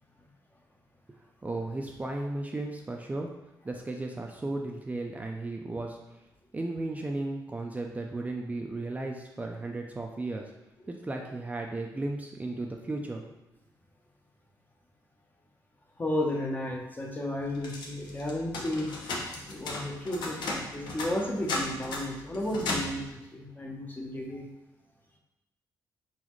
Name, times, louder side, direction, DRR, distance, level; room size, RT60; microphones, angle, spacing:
voice 1, 1.1-3.3 3.6-6.0 6.5-10.5 10.9-13.2, right 2 dB, 20° right, 1 dB, 0.5 m, -35 dB
voice 2, 16.0-19.0 19.5-24.5, left 1 dB, 25° left, 0 dB, 0.9 m, -33 dB
sound 1, 17.5-23.0, left 2 dB, 80° left, 0.9 m, -35 dB
4.0 x 4.0 x 3.1 m, 0.98 s
cardioid pair, 80°, 8 cm